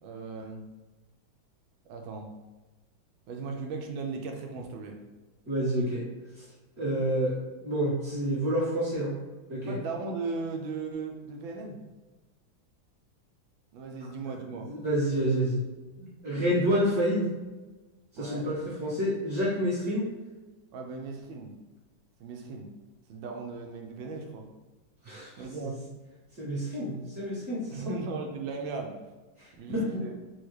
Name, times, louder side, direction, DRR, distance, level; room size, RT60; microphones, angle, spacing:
voice 1, 0.0-0.6 1.9-2.3 3.3-5.0 9.7-11.8 13.7-14.7 18.1-18.5 20.7-21.6 22.2-22.7 23.1-24.4 25.4-25.9 27.7-29.1 29.6-30.1, right 4 dB, 80° right, 2 dB, 1.4 m, -37 dB
voice 2, 5.5-6.0 6.4-6.5 6.8-9.2 9.5-9.7 14.3-14.4 14.6-15.6 16.0-17.3 18.1-20.1 25.0-25.3 25.6-25.7 26.4-27.9 29.4-30.0, equal, 40° right, -11 dB, 1.8 m, -29 dB
5.6 x 2.4 x 3.1 m, 1.2 s
omnidirectional pair, 2.2 m